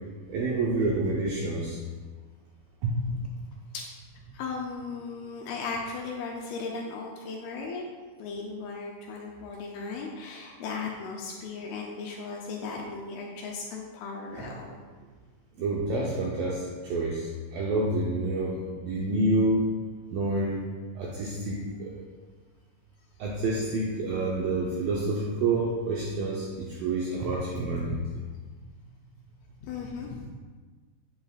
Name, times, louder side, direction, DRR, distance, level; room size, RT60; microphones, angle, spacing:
voice 1, 0.3-1.8 2.8-3.2 14.4-14.5 15.6-19.6 20.1-20.6 21.0-21.9 23.2-28.2, right 2 dB, 80° right, -3 dB, 2.1 m, -28 dB
voice 2, 4.3-7.8 8.2-14.8 29.6-30.3, left 4 dB, 80° left, -1 dB, 2.3 m, -36 dB
8.3 x 7.6 x 2.4 m, 1.4 s
omnidirectional pair, 4.9 m